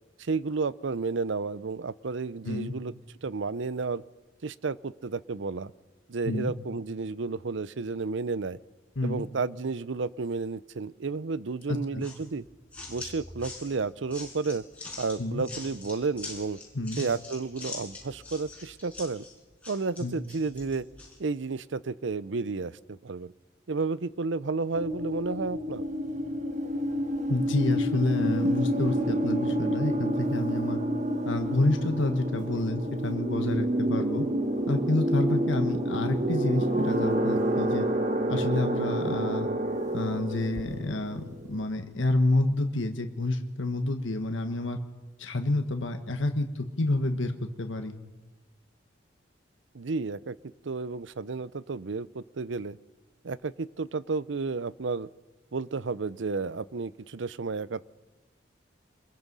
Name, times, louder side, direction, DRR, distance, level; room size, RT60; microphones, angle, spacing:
voice 1, 0.2-2.9 3.2-4.0 4.4-5.7 6.1-8.6 9.0-12.4 12.9-14.6 15.0-16.6 17.0-19.2 19.7-20.8 21.2-23.3 23.7-25.9 49.7-50.3 50.6-52.8 53.2-55.1 55.5-57.8, right 4 dB, 75° right, 18 dB, 0.6 m, -32 dB
voice 2, 11.7-12.0 15.2-15.4 16.7-17.0 20.0-20.2 27.3-30.8 31.3-34.2 34.7-37.9 38.3-39.5 39.9-44.8 45.2-47.9, left 2 dB, 80° left, 5 dB, 1.4 m, -28 dB
sound 1, 12.0-21.2, left 3 dB, 5° left, 5.6 m, -43 dB
sound 2, 24.7-41.6, right 1 dB, 40° right, 1.3 m, -29 dB
25.0 x 21.5 x 5.5 m, 1.1 s
head